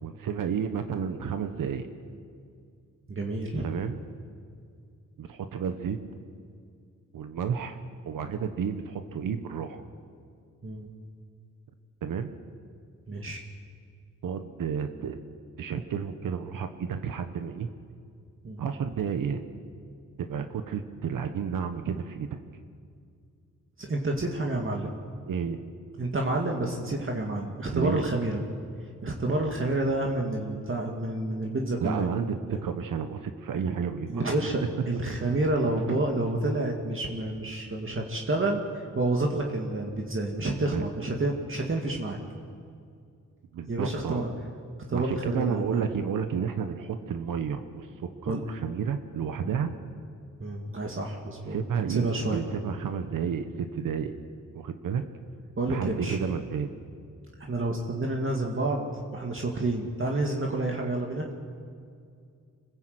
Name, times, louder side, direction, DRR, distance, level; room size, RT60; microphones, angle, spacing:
voice 1, 0.0-1.9 3.6-3.9 5.2-6.0 7.1-7.8 8.1-9.8 12.0-12.3 14.2-15.2 15.6-17.7 18.6-19.4 20.2-22.4 25.2-25.6 27.7-28.0 31.8-34.3 40.5-40.8 43.5-44.2 44.9-49.8 51.5-54.1 54.5-55.0 55.7-56.7, right 7 dB, 85° right, 7 dB, 1.2 m, -31 dB
voice 2, 3.1-3.7 10.6-10.9 13.1-13.4 18.4-18.6 23.8-24.9 26.0-28.4 29.0-32.1 32.5-32.6 33.5-33.6 34.1-42.2 43.7-44.3 44.9-45.9 48.3-48.4 50.4-52.5 55.6-56.2 57.4-58.8 59.1-61.3, right 2 dB, 40° right, 0 dB, 2.4 m, -29 dB
26.5 x 15.0 x 8.0 m, 2.3 s
cardioid pair, 70°, 32 cm